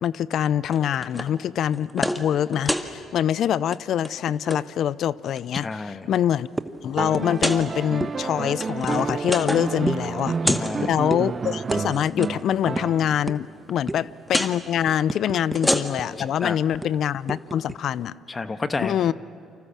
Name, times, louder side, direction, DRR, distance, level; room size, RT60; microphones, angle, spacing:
voice 1, 0.0-5.7 6.1-6.5 6.8-10.4 10.8-18.1 18.8-19.1, left 10 dB, 65° left, 19 dB, 0.6 m, -24 dB
sound 1, 0.7-1.3 1.7-2.2 2.5-2.9 3.6-3.8 4.0-4.6 5.2-5.8 6.3-6.4 7.3-7.6 8.4-9.8 10.0-10.7 11.6-12.3 14.3-14.5 15.4-16.2, left 1 dB, 10° left, 2.0 m, -28 dB
voice 2, 5.5-6.1 10.4-11.0 16.2-16.6 18.3-19.1, left 3 dB, 30° left, 9 dB, 1.5 m, -29 dB
sound 2, 6.6-6.8 7.1-7.3 7.5-7.7 8.0-8.1 8.8-9.4 9.9-10.1 10.5-10.8 11.1-11.3 11.7-11.8 12.1-12.3 12.8-12.9 13.3-13.4 13.9-14.1 14.6-16.0 16.3-16.4 16.8-17.8, right 2 dB, 15° right, 1.2 m, -30 dB
sound 3, 6.9-13.4 14.9-15.0, right 5 dB, 40° right, 0.5 m, -30 dB
29.5 x 25.5 x 7.5 m, 2.5 s
supercardioid pair, 65°, 0 cm